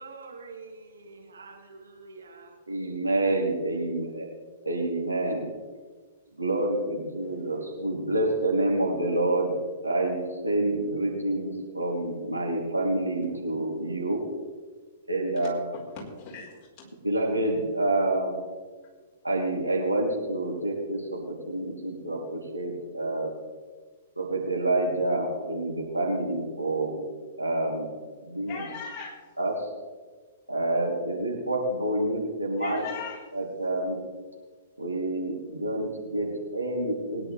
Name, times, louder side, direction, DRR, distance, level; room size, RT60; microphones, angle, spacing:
voice 1, 0.0-2.6, right 4 dB, 75° right, 0 dB, 2.7 m, -46 dB
voice 2, 2.7-4.3 4.6-5.5 6.4-14.3 15.1-15.6 17.0-18.4 19.2-23.4 24.2-27.0 27.4-27.9 28.2-28.7 29.4-29.7 30.5-32.8 33.3-34.0 34.8-37.3, right 2 dB, 90° right, -2 dB, 3.2 m, -28 dB
voice 3, 15.7-16.9 28.5-29.2 32.6-33.3, left 5 dB, 30° left, -4 dB, 4.6 m, -39 dB
21.0 x 10.5 x 3.4 m, 1.4 s
figure-of-eight pair, 110°, 0 cm